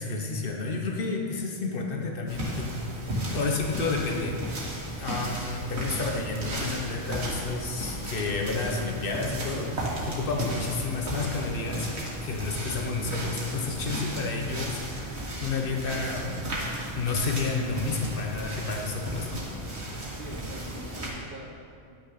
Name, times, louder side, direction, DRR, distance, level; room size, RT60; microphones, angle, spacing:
voice 1, 0.0-2.7 3.3-16.4 16.9-19.4, left 3 dB, 55° left, 1 dB, 1.3 m, -31 dB
sound 1, 2.3-21.1, right 1 dB, 70° right, 2.1 m, -35 dB
voice 2, 20.1-22.0, right 1 dB, 50° right, -5 dB, 1.4 m, -44 dB
10.5 x 6.1 x 5.9 m, 2.3 s
omnidirectional pair, 1.1 m